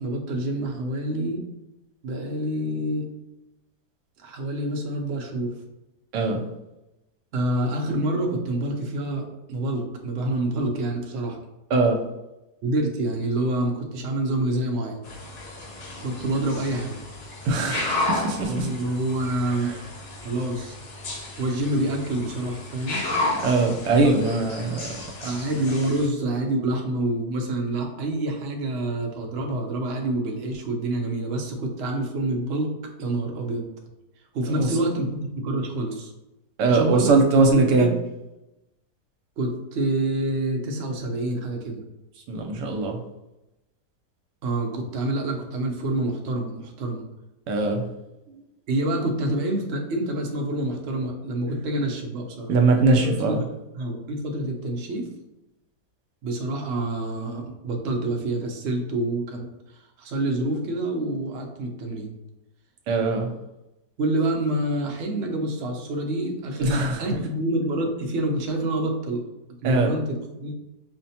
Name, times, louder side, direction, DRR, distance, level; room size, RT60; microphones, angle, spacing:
voice 1, 0.0-1.5 2.0-3.1 4.2-5.6 7.3-11.4 12.6-15.0 16.0-17.0 18.5-19.7 20.2-20.7 21.4-23.0 25.2-32.7 33.0-33.7 34.3-35.1 35.4-36.1 36.7-37.2 37.5-37.9 39.4-41.8 44.4-47.0 48.7-52.5 52.9-53.4 53.7-55.1 56.2-59.5 60.0-62.1 64.0-69.2 69.6-70.5, right 1 dB, 65° right, 1 dB, 0.6 m, -27 dB
sound 1, 15.0-26.1, left 2 dB, 85° left, 1.6 m, -33 dB
voice 2, 17.4-18.7 19.6-19.7 23.4-25.0 25.2-25.3 34.5-34.7 36.6-37.9 42.3-43.0 47.5-47.9 52.5-53.4 62.9-63.3 66.6-67.2 69.6-69.9, right 3 dB, 85° right, 2 dB, 1.2 m, -21 dB
5.5 x 2.1 x 2.7 m, 0.96 s
omnidirectional pair, 1.8 m